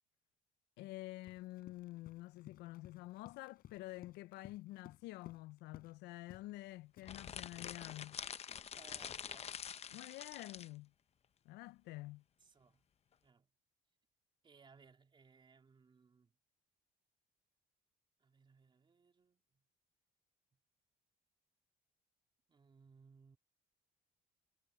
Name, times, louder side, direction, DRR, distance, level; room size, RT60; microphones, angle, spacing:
voice 1, 0.8-8.2 9.9-10.9 11.5-12.2, left 18 dB, 85° left, 0.5 m, -49 dB
Run, 1.2-6.0 6.3-6.6 7.0-8.8, left 11 dB, 65° left, 4.7 m, -60 dB
sound 1, 7.0-10.7, left 8 dB, 40° left, 0.7 m, -47 dB
voice 2, 8.7-9.6 12.4-12.8 13.2-13.5 14.4-16.3 18.2-19.6 22.5-23.4, right 5 dB, 30° right, 3.3 m, -65 dB
cardioid pair, 110°, 17 cm